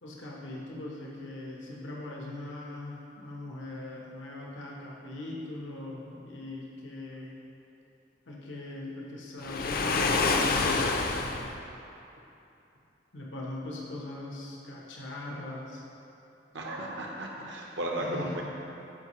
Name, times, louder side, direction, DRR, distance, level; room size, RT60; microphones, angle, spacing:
voice 1, 0.0-7.3 8.3-11.6 13.1-15.8 18.0-18.4, left 2 dB, 90° left, -3 dB, 1.1 m, -40 dB
Waves surf, 9.4-11.5, left 3 dB, 55° left, 0.5 m, -27 dB
voice 2, 16.5-18.4, right 1 dB, 70° right, -1 dB, 1.1 m, -34 dB
14.0 x 5.2 x 3.1 m, 2.8 s
head